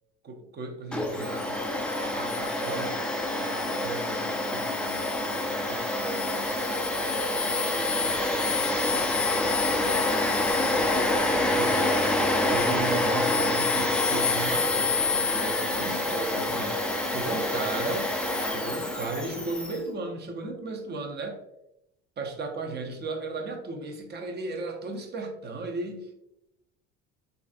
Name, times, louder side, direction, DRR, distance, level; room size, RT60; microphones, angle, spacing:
voice 1, 0.2-3.0 3.3-6.5 7.0-10.1 10.5-12.0 12.5-18.1 18.5-21.4 22.2-26.1, right 3 dB, 30° right, 3 dB, 0.6 m, -36 dB
Domestic sounds home sounds, 0.9-19.8, left 2 dB, 5° left, 0.3 m, -27 dB
3.2 x 2.5 x 2.4 m, 0.86 s
supercardioid pair, 80°, 34 cm